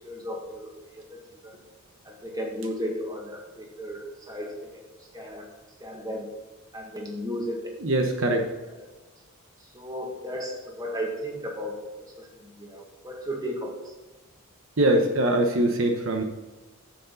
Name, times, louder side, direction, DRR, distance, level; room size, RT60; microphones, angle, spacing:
voice 1, 0.0-0.7 1.1-1.5 2.1-4.8 5.1-5.5 5.8-6.3 6.7-7.7 9.7-12.3 12.6-13.9, equal, 15° right, 1 dB, 1.8 m, -34 dB
voice 2, 7.8-8.5 14.8-16.2, right 1 dB, 60° right, 3 dB, 1.1 m, -22 dB
10.0 x 8.1 x 4.0 m, 1.2 s
head